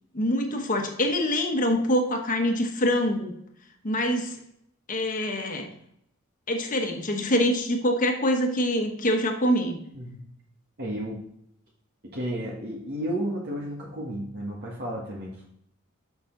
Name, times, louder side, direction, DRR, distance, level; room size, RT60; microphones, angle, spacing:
voice 1, 0.1-3.3 3.8-4.4 4.9-5.7 6.5-9.8, equal, 40° left, 4 dB, 1.1 m, -25 dB
voice 2, 10.8-11.2 12.1-15.5, right 1 dB, 50° right, -3 dB, 1.4 m, -32 dB
6.8 x 6.0 x 3.8 m, 0.74 s
head